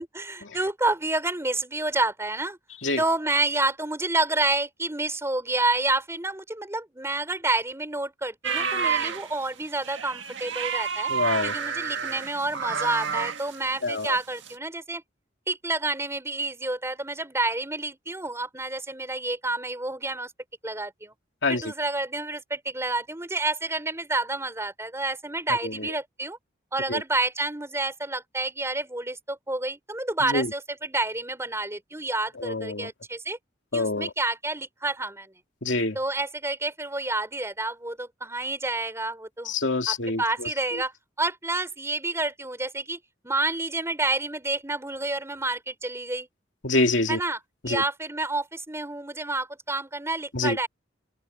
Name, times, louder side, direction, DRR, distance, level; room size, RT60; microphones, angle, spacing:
voice 1, 0.0-2.6 2.9-11.1 11.4-15.0 15.5-20.3 20.6-21.1 21.5-26.4 26.7-33.4 33.7-35.3 35.9-39.5 39.9-40.9 41.2-43.0 43.2-46.3 47.1-47.4 47.6-50.7, right 2 dB, 15° right, 4.3 m, -29 dB
sound 1, 8.4-14.1 14.4-14.5, right 6 dB, 70° right, 1.8 m, -30 dB
voice 2, 11.1-11.5 13.8-14.1 21.4-21.7 25.6-25.7 26.9-27.0 30.3-30.5 32.4-32.9 33.7-34.1 35.6-36.0 39.5-40.5 46.6-47.2 47.6-47.8 50.3-50.6, left 2 dB, 70° left, 2.7 m, -26 dB
open air
head